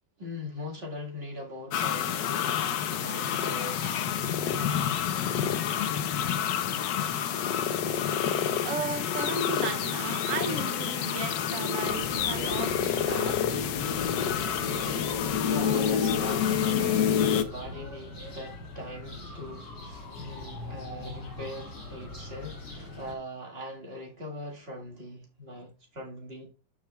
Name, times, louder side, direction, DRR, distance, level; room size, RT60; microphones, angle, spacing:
voice 1, 0.2-4.9 15.1-26.5, left 1 dB, 30° right, 1.9 m, -41 dB
sound 1, 1.7-17.4, left 8 dB, 70° left, 1.3 m, -28 dB
voice 2, 8.6-13.4, right 6 dB, 60° right, 0.8 m, -35 dB
sound 2, 11.8-23.1, left 1 dB, 85° left, 3.4 m, -41 dB
13.0 x 4.8 x 2.3 m
omnidirectional pair, 2.1 m